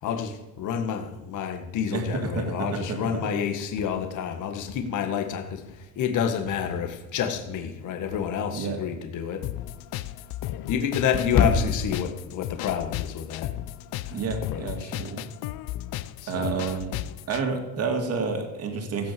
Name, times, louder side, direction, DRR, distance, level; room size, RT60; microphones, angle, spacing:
voice 1, 0.0-9.5 10.7-13.5 14.0-14.2 14.5-14.9 16.2-16.5, left 7 dB, 45° left, 5 dB, 1.8 m, -28 dB
voice 2, 1.9-3.3 8.5-8.8 14.1-15.3 16.3-17.0 17.3-19.1, right 4 dB, 35° right, 5 dB, 2.4 m, -30 dB
sound 1, 9.4-17.4, left 14 dB, 65° left, 0.8 m, -35 dB
16.0 x 9.3 x 7.0 m, 1.2 s
cardioid pair, 165°, 41 cm